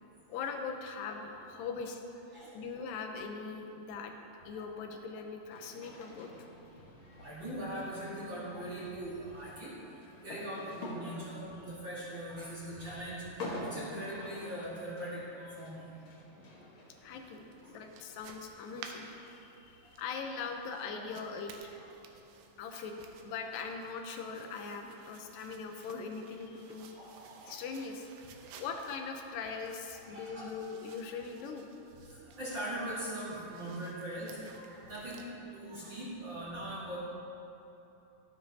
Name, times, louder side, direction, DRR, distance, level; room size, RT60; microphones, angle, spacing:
voice 1, 0.3-2.0 2.5-4.2 4.4-6.5 17.0-21.5 22.6-22.9 23.2-26.9 27.5-28.1 28.6-31.7, left 5 dB, 85° left, 3 dB, 2.5 m, -41 dB
voice 2, 2.3-2.7 4.5-4.6 5.8-6.1 6.5-6.6 6.9-9.9 10.2-15.9 16.5-16.7 17.6-17.8 19.8-19.9 20.9-21.0 21.7-22.2 26.9-27.6 28.4-28.6 29.9-30.5 32.0-37.0, right 1 dB, 45° right, -9 dB, 1.7 m, -42 dB
sound 1, 5.5-18.4, left 1 dB, 60° left, 1.4 m, -48 dB
sound 2, 17.1-35.3, right 6 dB, 80° right, 2.3 m, -56 dB
12.5 x 9.5 x 2.7 m, 2.9 s
omnidirectional pair, 3.9 m